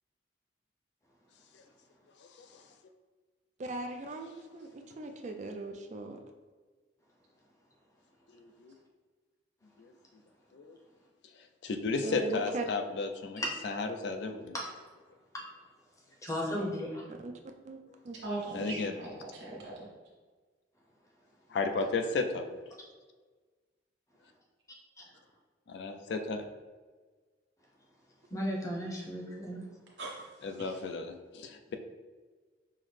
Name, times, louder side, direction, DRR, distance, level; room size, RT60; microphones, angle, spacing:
voice 1, 2.2-2.6 8.3-8.7 9.8-9.9 10.5-10.8 11.6-14.6 18.5-18.9 21.5-22.5 25.7-26.4 30.4-31.7, left 3 dB, 70° left, 6 dB, 0.4 m, -34 dB
voice 2, 3.6-6.2 12.0-12.6 17.1-17.3 17.6-17.8 18.0-18.2, right 2 dB, 40° right, 5 dB, 0.3 m, -39 dB
voice 3, 16.2-17.0 28.3-29.6, equal, 20° left, -2 dB, 0.6 m, -35 dB
voice 4, 18.2-19.9 30.0-30.3 30.6-30.8, right 2 dB, 75° right, -5 dB, 1.2 m, -40 dB
5.6 x 2.0 x 3.2 m, 1.4 s
head